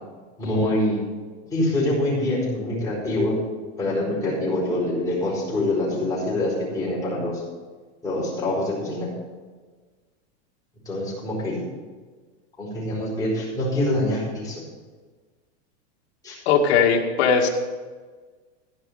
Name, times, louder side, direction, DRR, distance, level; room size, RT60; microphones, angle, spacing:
voice 1, 0.4-1.0 1.5-3.4 3.8-7.4 8.0-9.1 10.8-11.6 12.6-14.6 16.2-16.4, left 1 dB, 10° left, -6 dB, 4.7 m, -25 dB
voice 2, 16.5-17.5, left 6 dB, 65° left, 1 dB, 2.2 m, -19 dB
15.5 x 5.5 x 8.0 m, 1.4 s
supercardioid pair, 165°, 35 cm